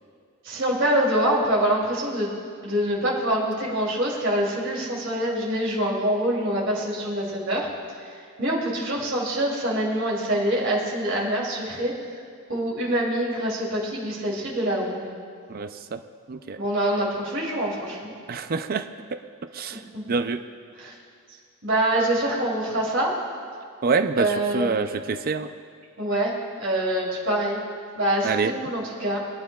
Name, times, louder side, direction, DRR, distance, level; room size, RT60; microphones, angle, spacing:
voice 1, 0.4-2.3 2.6-7.7 8.4-11.9 12.5-15.1 16.6-18.1 19.7-20.0 20.8-20.9 21.6-23.1 24.2-24.7 26.0-26.3 26.6-27.6 27.9-29.2, right 1 dB, 60° right, -4 dB, 2.8 m, -25 dB
voice 2, 15.5-16.0 16.3-16.6 18.3-18.8 19.1-19.2 19.5-19.8 20.1-20.4 23.8-25.5 28.2-28.5, right 4 dB, 45° right, 8 dB, 0.5 m, -26 dB
23.0 x 9.3 x 2.3 m, 2.2 s
head